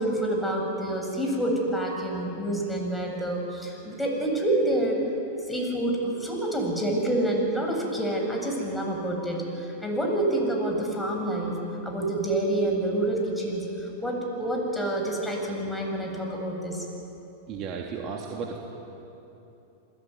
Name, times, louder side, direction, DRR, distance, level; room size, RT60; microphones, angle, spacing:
voice 1, 0.0-5.0 5.5-11.6 11.8-16.9, right 1 dB, 5° left, 0 dB, 7.9 m, -27 dB
voice 2, 17.5-18.6, right 5 dB, 40° right, 0 dB, 3.0 m, -34 dB
29.0 x 21.0 x 9.6 m, 3.0 s
hypercardioid pair, 105°, 0 cm